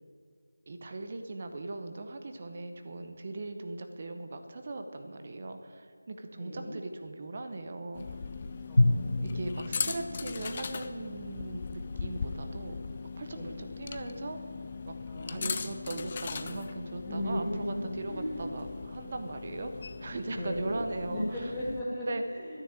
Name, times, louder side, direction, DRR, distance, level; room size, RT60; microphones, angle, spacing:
voice 1, 0.7-8.2 9.2-12.8 13.2-14.4 14.9-15.0 15.3-21.5 21.9-22.2, right 2 dB, 25° right, 6 dB, 0.7 m, -39 dB
voice 2, 6.3-6.8 8.7-9.6 13.3-13.5 15.1-15.7 17.0-18.5 20.3-20.8 21.1-22.6, equal, ahead, -13 dB, 2.0 m, -36 dB
sound 1, 7.9-21.8, left 5 dB, 20° left, 0.4 m, -39 dB
Drum, 8.8-11.2, left 2 dB, 70° left, 0.7 m, -29 dB
10.5 x 9.2 x 8.7 m, 2.1 s
figure-of-eight pair, 175°, 0 cm